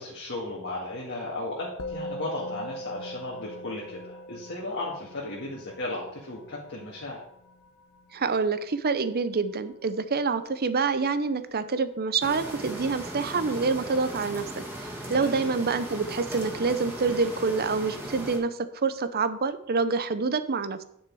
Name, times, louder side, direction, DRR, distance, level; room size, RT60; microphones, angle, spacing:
voice 1, 0.0-7.2 15.0-15.4, left 2 dB, 55° left, -4 dB, 2.1 m, -35 dB
Musical instrument, 1.8-11.3, equal, 70° left, 1.0 m, -42 dB
voice 2, 8.1-14.5 15.1-20.8, right 4 dB, 45° right, 12 dB, 0.7 m, -27 dB
sound 1, 12.2-18.4, right 1 dB, 10° right, 2.3 m, -38 dB
9.7 x 6.4 x 4.8 m, 0.74 s
head